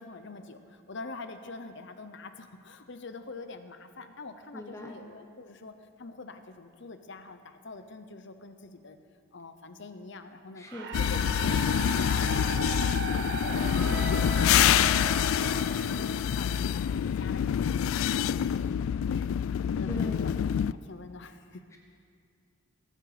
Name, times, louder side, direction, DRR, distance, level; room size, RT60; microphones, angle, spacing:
voice 1, 0.0-9.0 9.3-15.1 15.4-20.3 20.8-21.8, left 3 dB, 60° left, 9 dB, 0.8 m, -46 dB
voice 2, 4.5-5.0 10.6-10.9 13.8-14.1 19.9-20.2 21.7-21.8, left 1 dB, 15° left, 1 dB, 0.8 m, -40 dB
sound 1, 10.7-16.8, right 3 dB, 55° right, 1.1 m, -36 dB
sound 2, 10.9-20.7, left 9 dB, 80° left, 0.3 m, -26 dB
21.5 x 7.7 x 5.0 m, 2.2 s
head